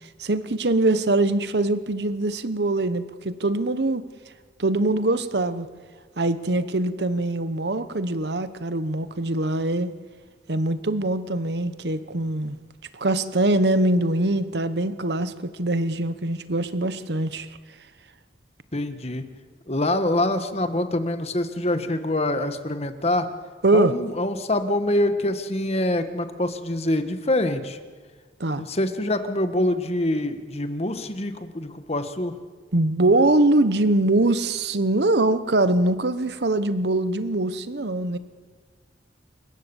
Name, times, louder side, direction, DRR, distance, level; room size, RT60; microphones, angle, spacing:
voice 1, 0.2-4.0 4.6-5.7 6.2-9.9 10.5-12.6 12.9-17.5 23.6-24.0 28.4-28.7 32.7-38.2, right 2 dB, 70° right, 12 dB, 1.1 m, -23 dB
voice 2, 18.7-19.2 19.7-23.3 23.7-27.8 28.6-32.3, left 1 dB, 35° left, 8 dB, 1.6 m, -25 dB
28.5 x 15.5 x 7.2 m, 1.6 s
head